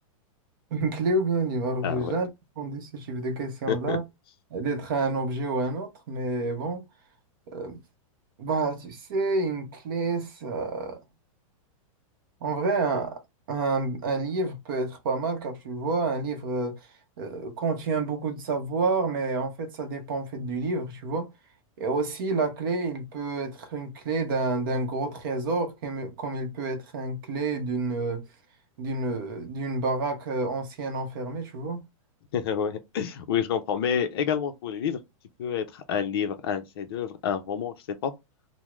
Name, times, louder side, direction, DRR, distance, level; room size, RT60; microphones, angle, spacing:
voice 1, 0.7-2.3 2.6-4.0 4.5-6.8 7.5-7.8 8.4-11.0 12.4-13.2 13.5-16.8 17.2-21.3 21.8-28.2 28.8-31.8, right 3 dB, 40° right, 0.7 m, -29 dB
voice 2, 3.7-4.0 32.3-35.0 35.4-37.7 38.0-38.1, left 8 dB, 45° left, 0.5 m, -28 dB
3.5 x 2.0 x 2.9 m
supercardioid pair, 180°, 18 cm